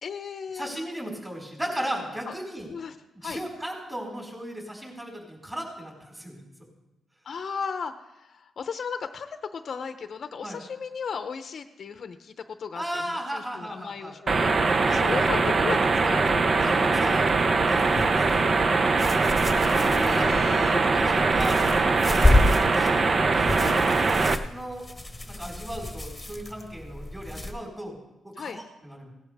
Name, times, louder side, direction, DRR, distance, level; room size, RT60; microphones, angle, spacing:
voice 1, 0.0-0.7 2.3-2.4 2.7-3.0 3.2-3.4 7.2-17.8 19.5-20.8 22.2-22.4 23.6-23.8 28.4-28.6, left 6 dB, 55° left, 9 dB, 0.7 m, -36 dB
voice 2, 0.5-2.7 3.2-6.4 10.4-10.6 12.7-14.1 14.8-15.1 16.6-17.3 17.7-18.8 20.3-22.4 22.7-23.0 23.3-23.9 24.5-24.9 25.3-27.9 28.2-29.1, equal, 15° right, -1 dB, 4.9 m, -36 dB
sound 1, 14.3-24.4, right 3 dB, 40° right, 0.7 m, -22 dB
sound 2, 17.7-27.5, left 1 dB, 10° left, 1.4 m, -29 dB
17.5 x 12.0 x 3.5 m, 0.96 s
cardioid pair, 100°, 0 cm